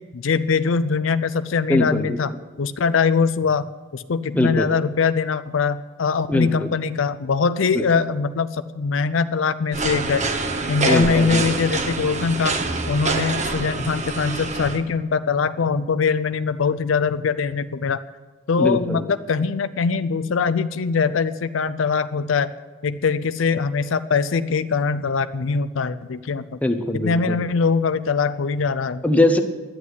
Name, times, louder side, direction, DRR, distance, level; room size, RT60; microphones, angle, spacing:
voice 1, 0.1-3.7 3.9-10.2 10.7-12.5 12.9-18.0 18.5-22.5 22.8-26.6 26.9-29.0, left 5 dB, 80° left, 14 dB, 0.5 m, -22 dB
voice 2, 1.7-2.2 4.3-4.7 6.3-6.7 7.7-7.8 10.8-11.4 18.6-19.0 26.6-27.3 29.0-29.4, left 1 dB, 10° left, 5 dB, 0.9 m, -21 dB
sound 1, 9.7-14.8, right 3 dB, 40° right, 1.1 m, -25 dB
11.5 x 8.4 x 9.5 m, 1.3 s
head